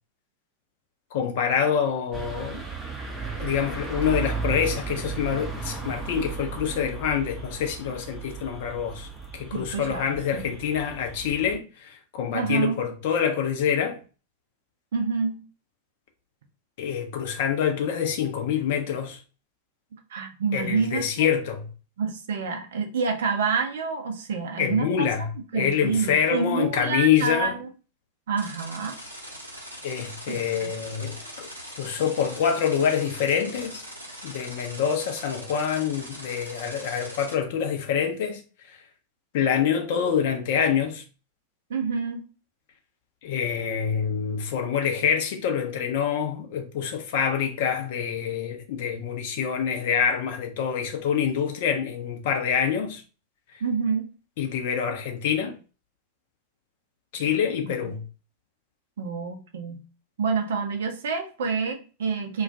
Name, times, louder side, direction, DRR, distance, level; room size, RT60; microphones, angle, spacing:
voice 1, 1.1-2.6 3.4-14.0 16.8-19.2 20.5-21.7 24.6-27.6 29.8-31.5 31.8-33.8 34.2-38.8 39.3-41.0 43.2-53.0 54.4-55.5 57.1-58.0, left 8 dB, 50° left, 0.6 m, -26 dB
sound 1, 2.1-11.6, right 5 dB, 10° right, 0.6 m, -35 dB
voice 2, 9.5-10.5 12.3-12.8 14.9-15.4 20.1-21.3 22.0-25.1 25.5-27.7 28.3-29.0 30.3-30.7 41.7-42.2 53.6-54.1 57.6-57.8 59.0-59.8 60.2-62.4, right 5 dB, 60° right, 0.5 m, -28 dB
sound 2, 28.4-37.3, equal, 85° right, 0.8 m, -41 dB
2.3 x 2.2 x 2.6 m
figure-of-eight pair, 90°, 0 cm